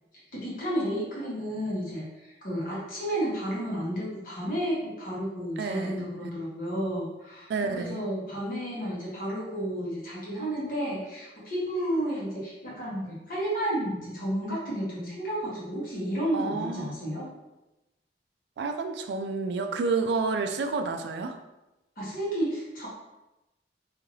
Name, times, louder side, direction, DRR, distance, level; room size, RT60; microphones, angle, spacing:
voice 1, 0.3-17.3 22.0-22.9, equal, 50° left, -6 dB, 1.1 m, -32 dB
voice 2, 5.6-6.0 7.5-8.0 16.3-16.9 18.6-21.4, right 4 dB, 75° right, 6 dB, 0.3 m, -30 dB
2.7 x 2.4 x 3.1 m, 0.99 s
head